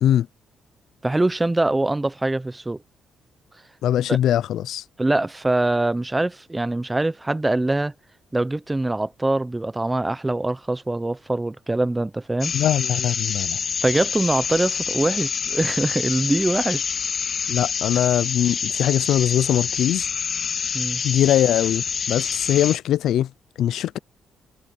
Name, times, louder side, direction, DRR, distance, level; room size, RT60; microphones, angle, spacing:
voice 1, 1.0-2.8 4.1-4.2 5.0-7.9 8.3-12.5 13.8-16.9 20.7-21.0, right 2 dB, 15° right, 0.8 m, -23 dB
voice 2, 3.8-4.8 12.5-13.6 17.5-20.1 21.0-23.3 23.6-24.0, left 11 dB, 75° left, 0.6 m, -21 dB
sound 1, 12.4-22.8, left 6 dB, 50° left, 4.4 m, -27 dB
cardioid pair, 90°, 0 cm